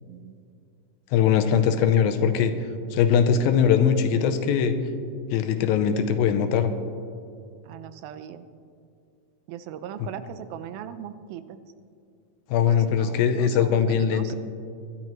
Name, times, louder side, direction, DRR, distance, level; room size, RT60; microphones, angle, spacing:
voice 1, 0.0-0.3 7.7-8.4 9.5-11.6 12.7-14.3, right 9 dB, 85° right, 12 dB, 2.5 m, -39 dB
voice 2, 1.1-2.5 2.9-4.7 5.3-6.7 10.0-10.1 12.5-14.4, left 7 dB, 80° left, 8 dB, 2.5 m, -21 dB
24.0 x 11.5 x 3.1 m, 2.4 s
omnidirectional pair, 4.2 m